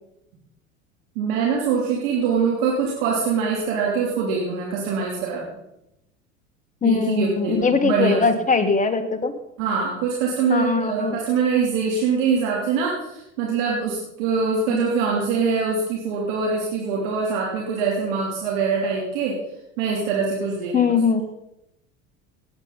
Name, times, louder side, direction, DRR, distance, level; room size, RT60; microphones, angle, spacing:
voice 1, 1.1-5.4 6.8-8.2 9.6-19.3 19.8-20.9, right 5 dB, 65° right, -3 dB, 3.2 m, -23 dB
voice 2, 6.8-9.3 10.5-11.2 14.7-14.8 20.7-21.2, left 5 dB, 20° left, 8 dB, 1.8 m, -21 dB
19.0 x 8.8 x 4.1 m, 0.86 s
hypercardioid pair, 80°, 40 cm